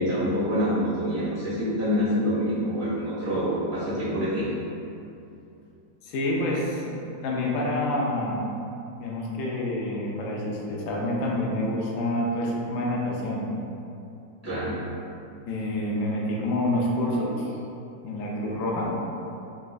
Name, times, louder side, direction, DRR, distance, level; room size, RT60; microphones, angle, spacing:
voice 1, 0.0-4.5 14.4-14.8, equal, 10° right, -13 dB, 1.2 m, -26 dB
voice 2, 6.0-7.0 7.2-8.4 9.0-13.5 15.5-17.5 18.0-19.0, left 1 dB, 70° left, -3 dB, 0.8 m, -27 dB
4.0 x 2.3 x 2.4 m, 2.7 s
omnidirectional pair, 1.8 m